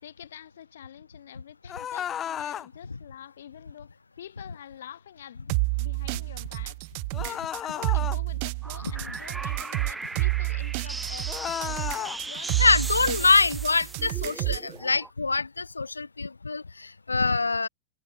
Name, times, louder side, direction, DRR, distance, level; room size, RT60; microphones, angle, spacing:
voice 1, 0.0-6.8 7.2-13.3 13.7-13.9, left 10 dB, 65° left, 4.5 m, -47 dB
sound 1, 1.7-2.7 7.1-8.2 11.3-12.2, left 10 dB, 25° left, 0.3 m, -33 dB
sound 2, 5.5-14.7, right 31 dB, 45° right, 0.3 m, -29 dB
sound 3, 8.6-15.1, right 3 dB, 10° right, 3.3 m, -38 dB
voice 2, 12.6-17.7, left 4 dB, 80° left, 0.9 m, -24 dB
figure-of-eight pair, 90°, 0 cm